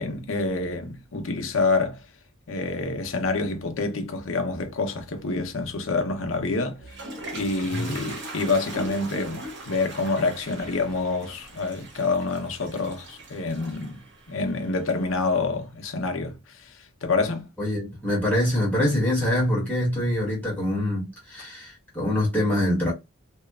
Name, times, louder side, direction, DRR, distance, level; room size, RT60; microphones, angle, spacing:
voice 1, 0.0-2.0 2.5-6.8 7.3-14.0 14.3-16.7 17.0-17.5, left 3 dB, 70° left, 0.7 m, -27 dB
Toilet flush, 6.5-15.4, right 1 dB, 55° right, 0.8 m, -40 dB
voice 2, 7.6-8.0 17.6-22.9, left 1 dB, 10° left, 1.2 m, -25 dB
2.8 x 2.3 x 2.3 m
head